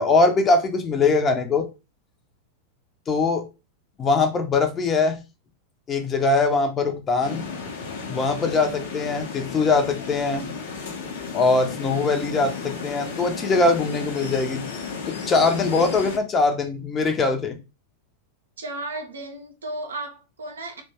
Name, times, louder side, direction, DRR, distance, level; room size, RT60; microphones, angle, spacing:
voice 1, 0.0-1.7 3.1-3.5 4.0-5.2 5.9-7.4 8.1-10.5 11.3-14.7 15.1-17.6, left 3 dB, 25° left, 0.6 m, -22 dB
sound 1, 7.2-16.2, left 5 dB, 60° left, 0.7 m, -34 dB
voice 2, 18.6-20.8, right 2 dB, 70° right, 0.6 m, -34 dB
2.9 x 2.2 x 2.7 m
figure-of-eight pair, 90°, 0 cm